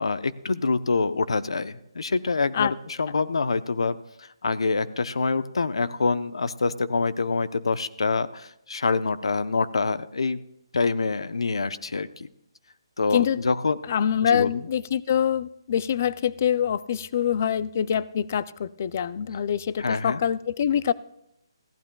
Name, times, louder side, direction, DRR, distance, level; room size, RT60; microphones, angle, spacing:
voice 1, 0.0-10.4 10.7-12.3 13.0-13.8 14.2-14.7 19.8-20.2, left 4 dB, 85° left, 14 dB, 0.7 m, -26 dB
voice 2, 13.9-20.9, left 9 dB, 30° left, 19 dB, 0.3 m, -25 dB
20.5 x 15.0 x 2.3 m, 0.82 s
hypercardioid pair, 175°, 3 cm